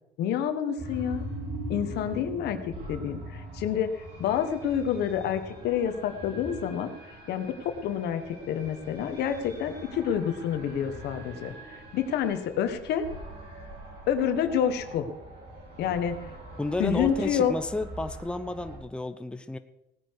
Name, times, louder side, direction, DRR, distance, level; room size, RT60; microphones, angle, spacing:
voice 1, 0.2-1.3 1.7-2.6 2.9-6.9 7.3-13.0 14.1-15.1 15.8-16.2 16.8-17.5, left 8 dB, 80° left, 9 dB, 1.4 m, -28 dB
sound 1, 0.8-18.8, right 1 dB, 80° right, 5.7 m, -42 dB
voice 2, 16.6-19.6, left 2 dB, 5° left, 10 dB, 0.7 m, -32 dB
18.0 x 9.5 x 4.7 m, 0.89 s
cardioid pair, 110°, 17 cm